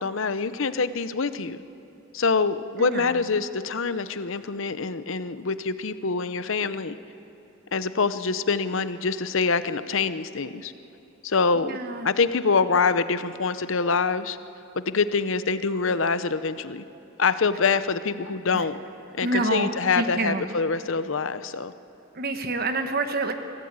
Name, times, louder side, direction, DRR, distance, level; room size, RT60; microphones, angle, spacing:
voice 1, 0.0-1.6 2.1-7.0 7.7-10.7 11.2-11.8 12.0-14.4 14.8-16.8 17.2-18.8 19.2-21.7, left 4 dB, 65° left, 13 dB, 0.7 m, -25 dB
voice 2, 11.6-12.1 19.2-19.7 20.0-20.4 22.2-23.3, right 2 dB, 45° right, 7 dB, 1.3 m, -27 dB
23.5 x 16.0 x 8.8 m, 2.8 s
head